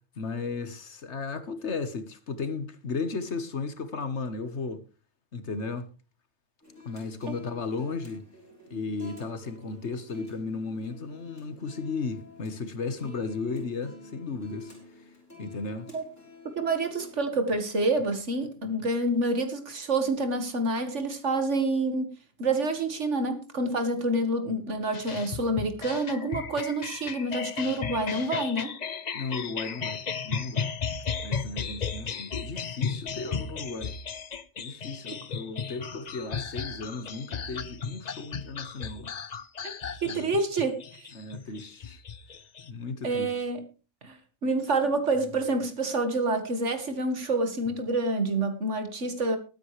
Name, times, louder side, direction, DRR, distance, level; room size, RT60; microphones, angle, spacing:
voice 1, 0.2-4.8 5.3-5.9 6.8-8.3 8.7-14.7 15.4-15.9 29.1-30.7 31.2-34.0 34.6-39.1 40.0-40.3 41.1-42.0 42.7-43.4 44.5-44.6, left 4 dB, 60° left, 1.7 m, -35 dB
sound 1, 6.6-17.1, left 3 dB, 10° left, 6.1 m, -49 dB
voice 2, 16.6-22.1 22.4-28.8 39.6-39.7 40.0-41.1 43.0-43.6 44.0-49.4, right 2 dB, 65° right, 2.1 m, -28 dB
sound 2, 24.9-42.7, left 6 dB, 40° left, 0.7 m, -35 dB
21.5 x 9.2 x 3.3 m
omnidirectional pair, 1.3 m